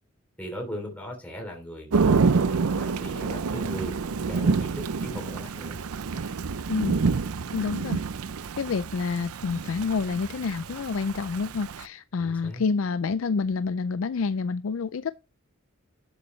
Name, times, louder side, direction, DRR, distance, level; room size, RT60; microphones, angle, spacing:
voice 1, 0.4-4.0 4.3-4.7 5.0-5.8 12.2-12.6, equal, 5° left, 3.0 m, -38 dB
Thunder / Rain, 1.9-11.8, right 4 dB, 85° right, 0.6 m, -27 dB
Hammer, 4.6-5.7 6.1-6.5 6.8-8.4 8.9-9.4 9.6-11.3, left 2 dB, 80° left, 2.2 m, -56 dB
voice 2, 6.7-7.0 7.5-8.0 8.6-15.1, left 4 dB, 65° left, 0.4 m, -28 dB
11.5 x 6.8 x 3.2 m
head